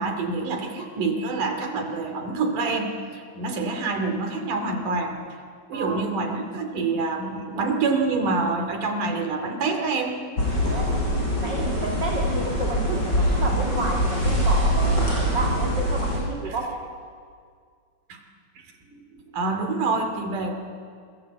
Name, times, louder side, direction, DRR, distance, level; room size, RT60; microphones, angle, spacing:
voice 1, 0.0-5.2 5.7-10.2 18.1-18.2 18.9-20.5, right 3 dB, 80° right, 6 dB, 4.2 m, -26 dB
voice 2, 5.7-6.1 10.6-11.1 11.4-16.8, right 2 dB, 35° right, 0 dB, 2.8 m, -31 dB
sound 1, 10.4-16.2, equal, 30° left, 6.8 m, -23 dB
28.5 x 22.5 x 8.4 m, 2.1 s
omnidirectional pair, 3.6 m